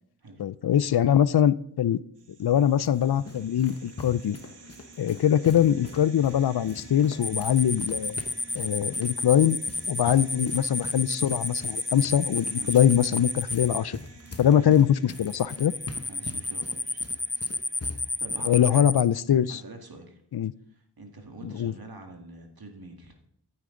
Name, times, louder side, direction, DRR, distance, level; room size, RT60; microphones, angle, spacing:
voice 1, 0.4-2.0 2.4-4.4 5.0-8.2 8.5-9.6 9.9-14.0 14.4-15.7 18.4-19.6 20.3-20.5 21.4-21.7, left 10 dB, 70° left, 18 dB, 0.5 m, -23 dB
sound 1, 2.2-18.7, right 4 dB, 85° right, 1.4 m, -51 dB
sound 2, 2.4-18.5, left 3 dB, 35° left, 1.1 m, -43 dB
sound 3, 7.2-13.8 15.2-19.0, left 2 dB, 10° left, 0.4 m, -30 dB
voice 2, 16.1-17.1 18.0-18.9 19.5-20.2 20.7-23.2, right 2 dB, 60° right, 3 dB, 2.0 m, -45 dB
14.0 x 8.7 x 3.8 m, 0.70 s
wide cardioid pair, 55°, 41 cm